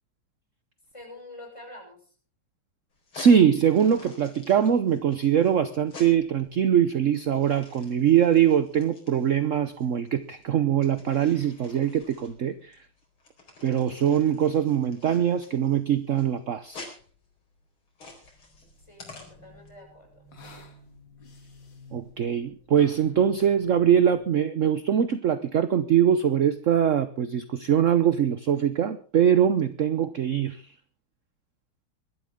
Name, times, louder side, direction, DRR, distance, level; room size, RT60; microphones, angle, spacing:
voice 1, 0.9-2.1 18.8-20.2, left 1 dB, 15° left, 1 dB, 7.0 m, -46 dB
sound 1, 2.9-19.7, left 3 dB, 80° left, 5.2 m, -49 dB
voice 2, 3.1-12.9 13.6-16.8 21.9-30.7, right 9 dB, 55° right, 13 dB, 0.8 m, -22 dB
sound 2, 18.1-24.4, left 3 dB, 60° left, 3.2 m, -50 dB
22.5 x 12.5 x 3.7 m, 0.39 s
omnidirectional pair, 2.3 m